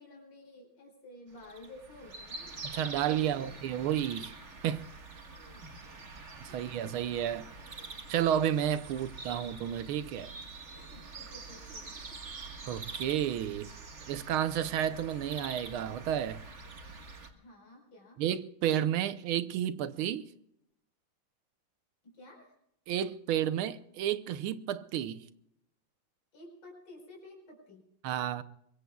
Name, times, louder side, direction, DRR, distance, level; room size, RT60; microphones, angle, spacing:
voice 1, 0.0-2.6 2.9-3.6 5.3-5.7 6.5-6.7 8.9-9.0 10.7-12.0 17.3-18.2 22.0-22.5 26.3-27.9, left 1 dB, 80° left, 5.6 m, -53 dB
sound 1, 1.4-17.3, right 3 dB, 35° right, 1.7 m, -46 dB
voice 2, 2.6-4.4 4.6-4.9 6.4-7.5 8.1-10.3 12.7-13.7 14.1-16.4 18.2-20.3 22.9-25.2 28.0-28.4, right 10 dB, 80° right, 1.6 m, -31 dB
24.0 x 22.0 x 2.3 m
omnidirectional pair, 2.3 m